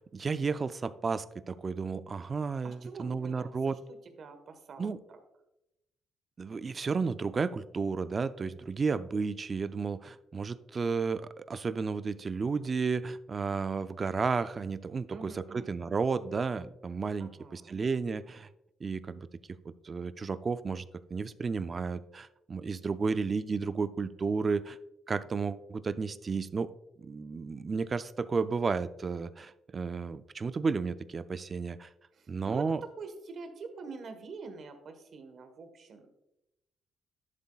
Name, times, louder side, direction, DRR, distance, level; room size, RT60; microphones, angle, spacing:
voice 1, 0.0-3.8 4.8-5.0 6.4-18.5 18.8-19.3 19.8-20.8 21.1-24.8 25.1-26.7 27.0-31.9 32.3-32.8, right 4 dB, 35° right, 13 dB, 0.4 m, -32 dB
voice 2, 2.6-3.5 4.0-5.2 15.1-15.7 17.2-17.8 32.1-36.1, right 4 dB, 55° right, 7 dB, 1.3 m, -45 dB
11.0 x 7.6 x 2.4 m, 0.87 s
cardioid pair, 90°, 0 cm